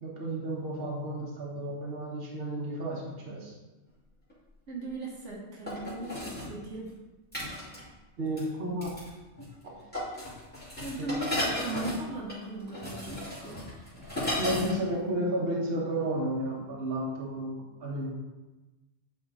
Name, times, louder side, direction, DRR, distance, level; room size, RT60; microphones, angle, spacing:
voice 1, 0.0-3.5 8.2-8.9 9.6-9.8 11.0-11.3 14.4-18.1, right 1 dB, 50° right, -3 dB, 1.5 m, -32 dB
sound 1, 4.3-4.4 5.7-6.5 7.3-7.9 8.4-8.5 8.8-9.1 9.4-9.7 9.9-14.8 15.1-15.2, left 1 dB, 10° left, 2.4 m, -34 dB
voice 2, 4.7-6.9 10.8-13.6, right 2 dB, 70° right, -3 dB, 1.5 m, -37 dB
9.1 x 3.7 x 4.1 m, 1.1 s
omnidirectional pair, 1.3 m